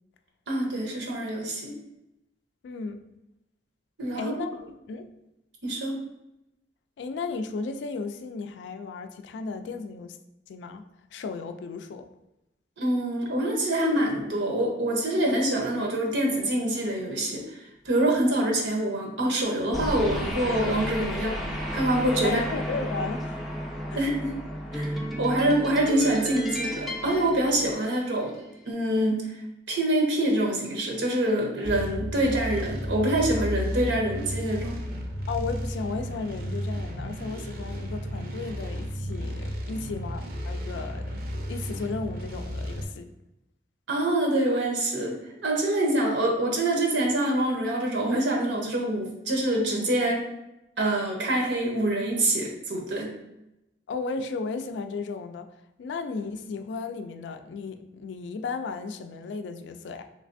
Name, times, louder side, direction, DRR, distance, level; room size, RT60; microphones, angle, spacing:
voice 1, 0.5-1.7 4.0-4.3 5.6-5.9 12.8-17.6 17.8-22.4 23.9-24.3 24.7-28.3 28.7-29.3 29.7-34.8 43.9-45.2 45.4-50.2 50.8-53.1, right 1 dB, 90° right, 0 dB, 0.8 m, -25 dB
voice 2, 2.6-3.0 4.1-5.1 7.0-10.2 10.5-12.1 22.2-23.4 23.9-24.0 35.3-43.1 53.9-55.5 55.8-60.0, left 4 dB, 75° left, 8 dB, 0.3 m, -35 dB
sound 1, 19.7-28.3, equal, ahead, 0.4 m, -33 dB
sound 2, 31.6-42.8, equal, 55° right, 0.5 m, -33 dB
3.2 x 3.2 x 2.5 m, 0.90 s
head